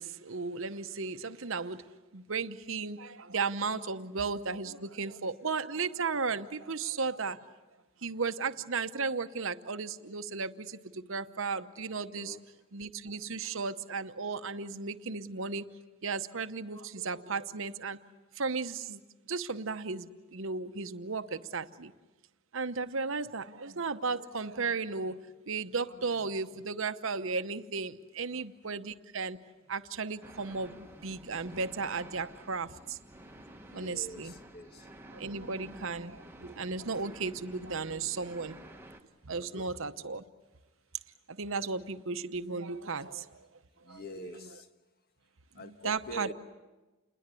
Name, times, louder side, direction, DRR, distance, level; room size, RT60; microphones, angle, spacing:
voice 1, 0.0-1.8 2.1-7.4 8.0-12.4 12.7-15.7 16.0-18.0 18.4-19.0 19.3-21.9 22.5-29.4 29.7-33.0 33.7-34.3 35.1-38.6 39.2-40.2 41.3-43.5 43.9-44.5 45.5-46.3, right 4 dB, 60° right, 0.9 m, -35 dB
sound 1, 30.2-39.0, right 1 dB, 10° right, 1.2 m, -51 dB
voice 2, 33.7-34.9 39.4-39.7 43.8-44.7 45.5-46.3, equal, 45° left, 1.5 m, -45 dB
28.5 x 21.0 x 8.4 m
head